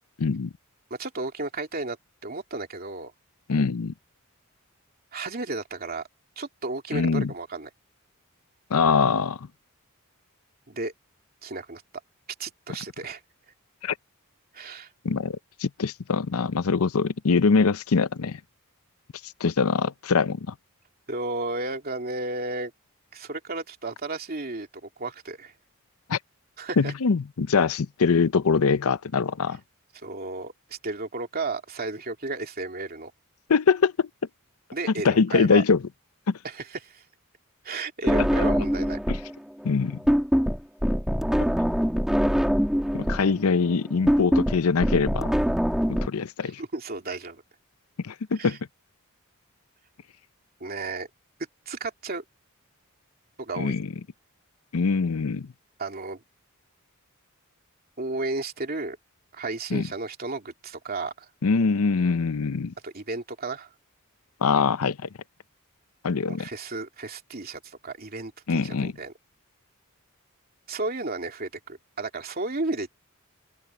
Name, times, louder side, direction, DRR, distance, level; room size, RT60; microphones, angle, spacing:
voice 1, 0.2-0.5 3.5-3.9 6.9-7.3 8.7-9.5 13.8-13.9 15.0-18.4 19.2-20.5 26.1-26.2 26.8-29.6 33.5-34.1 35.0-35.8 36.3-36.4 39.6-40.0 42.9-45.3 46.0-46.6 48.0-48.6 53.6-53.9 54.7-55.5 59.7-59.9 61.4-62.7 64.4-65.1 66.0-66.5 68.5-68.9, left 5 dB, 75° left, 0.6 m, -23 dB
voice 2, 0.9-2.0 2.2-3.1 5.1-6.0 6.4-7.7 10.7-10.9 11.4-11.8 12.4-13.2 14.5-14.9 21.1-22.7 23.1-25.5 26.6-26.9 30.0-33.1 34.7-35.6 36.4-37.0 37.6-39.0 46.4-47.4 48.4-48.6 50.6-51.1 51.7-52.2 53.4-53.8 55.8-56.2 58.0-59.0 59.3-61.3 62.8-63.7 66.2-69.1 70.7-72.9, right 3 dB, 45° right, 2.7 m, -33 dB
sound 1, 38.1-39.3 39.6-46.1, equal, ahead, 1.8 m, -23 dB
open air
head